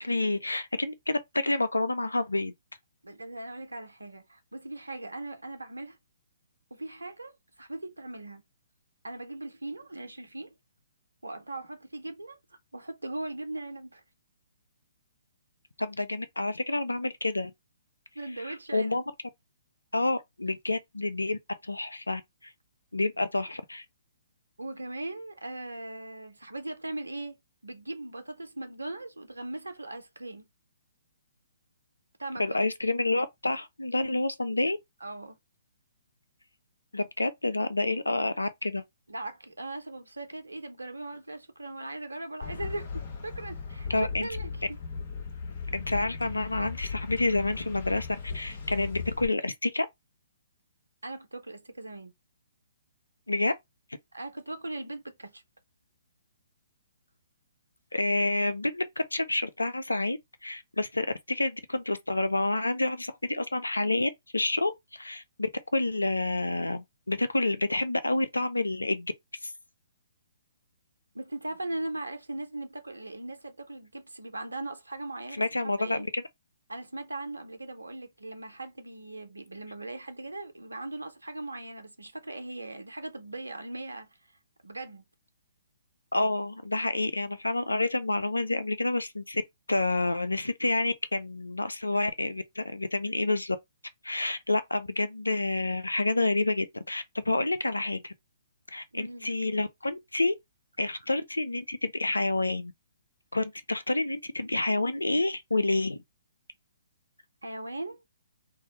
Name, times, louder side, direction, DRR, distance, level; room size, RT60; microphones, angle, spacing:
voice 1, 0.0-2.5 15.8-17.5 18.4-19.0 19.9-22.2 22.9-23.8 32.4-34.8 36.9-38.8 43.9-44.3 45.7-49.9 53.3-53.5 57.9-69.1 69.4-69.5 75.3-76.2 86.1-89.4 89.7-93.6 94.0-98.1 98.7-100.3 100.8-102.7 103.3-106.0, left 2 dB, 85° left, 0.4 m, -29 dB
voice 2, 3.0-6.0 6.7-8.4 9.0-10.5 11.2-12.4 12.7-14.0 18.2-19.0 24.6-27.4 27.6-30.5 32.2-32.6 35.0-35.4 39.1-44.8 51.0-52.1 54.1-55.4 71.1-76.1 76.7-84.1 84.6-85.0 98.9-99.3 107.4-108.0, right 2 dB, 80° right, 0.5 m, -39 dB
sound 1, 42.4-49.3, left 5 dB, 45° left, 0.8 m, -37 dB
2.3 x 2.1 x 2.8 m
figure-of-eight pair, 130°, 0 cm